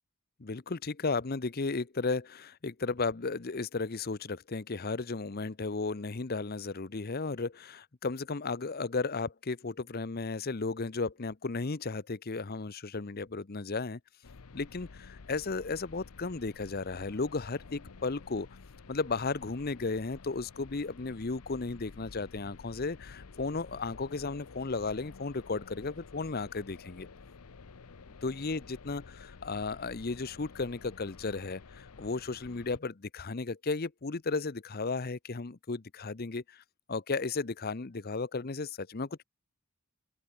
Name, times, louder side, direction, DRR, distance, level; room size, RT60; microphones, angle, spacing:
voice 1, 0.4-14.0 14.5-18.5 18.9-27.1 28.2-36.6 36.9-39.1, left 3 dB, 45° left, 0.7 m, -34 dB
sound 1, 14.2-32.8, left 4 dB, 80° left, 0.8 m, -51 dB
open air
head